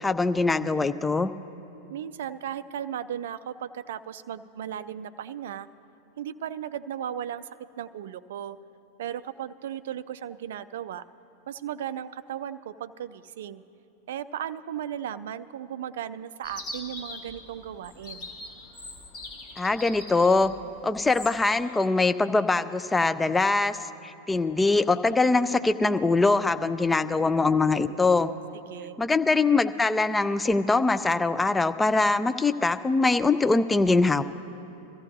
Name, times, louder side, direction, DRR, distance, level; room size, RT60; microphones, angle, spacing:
voice 1, 0.0-1.3 19.6-20.5 20.8-23.8 24.0-28.3 29.0-34.2, left 3 dB, 10° left, 11 dB, 0.4 m, -23 dB
voice 2, 1.9-5.7 6.2-7.5 7.8-8.6 9.0-11.0 11.5-13.6 14.1-18.3 28.5-29.0, right 10 dB, 60° right, 15 dB, 0.4 m, -36 dB
Chirp tweet, 16.4-21.6, left 2 dB, 45° left, 2.4 m, -42 dB
23.0 x 14.5 x 2.7 m, 2.8 s
figure-of-eight pair, 90°, 0 cm